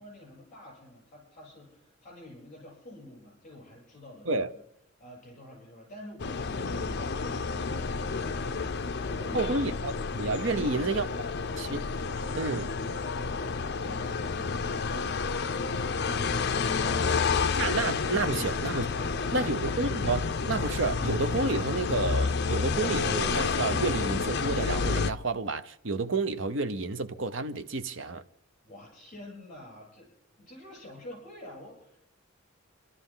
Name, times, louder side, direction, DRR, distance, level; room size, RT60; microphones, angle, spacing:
voice 1, 0.0-4.6 5.0-9.6 10.5-10.9 18.3-18.5 18.7-19.8 28.6-30.1 30.4-32.0, left 1 dB, 40° left, 7.9 m, -48 dB
sound 1, 6.2-25.1, left 4 dB, 55° left, 0.6 m, -30 dB
voice 2, 9.3-9.9 10.2-11.0 11.6-11.9 12.4-12.7 17.6-18.9 19.3-28.2, right 3 dB, 70° right, 0.9 m, -30 dB
29.0 x 12.5 x 3.9 m
head